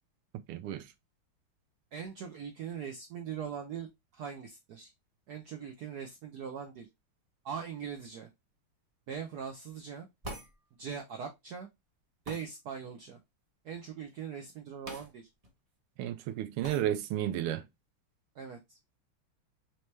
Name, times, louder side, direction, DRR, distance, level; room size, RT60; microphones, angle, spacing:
voice 1, 0.5-0.8 16.0-17.6, right 12 dB, 90° right, 1.5 m, -32 dB
voice 2, 1.9-3.9 4.1-4.9 5.3-6.9 7.4-8.3 9.1-10.1 10.8-11.7 12.3-13.2 13.6-15.3 18.4-18.8, right 7 dB, 75° right, 0.9 m, -41 dB
Hit the table, 10.2-10.5 12.3-12.5 14.9-15.1 15.4-15.5 16.6-16.8, right 1 dB, 40° right, 0.5 m, -42 dB
4.3 x 3.1 x 3.2 m
omnidirectional pair, 2.4 m